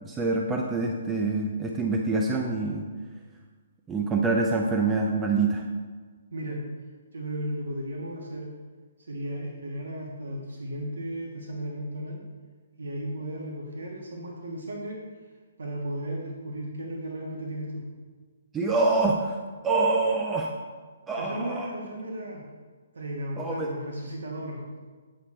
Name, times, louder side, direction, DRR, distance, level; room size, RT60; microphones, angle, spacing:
voice 1, 0.0-2.9 3.9-5.7 18.5-19.4 19.6-20.5 21.1-21.7 23.4-23.7, right 3 dB, 10° right, 0 dB, 0.4 m, -25 dB
voice 2, 7.1-8.5 9.1-12.2 12.8-15.0 15.6-17.9 21.2-22.4 22.9-24.6, right 1 dB, 90° right, -1 dB, 1.5 m, -35 dB
8.3 x 6.3 x 4.3 m, 1.5 s
hypercardioid pair, 175°, 0 cm